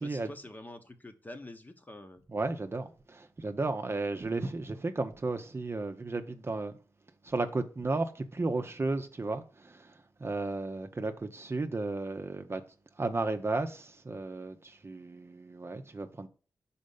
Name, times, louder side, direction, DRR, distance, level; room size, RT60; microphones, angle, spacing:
voice 1, 0.0-2.2, left 1 dB, 25° left, 1.0 m, -46 dB
voice 2, 2.3-6.8 7.2-12.6 13.0-16.3, right 3 dB, 35° right, 0.7 m, -34 dB
5.3 x 4.3 x 5.3 m
cardioid pair, 60°, 7 cm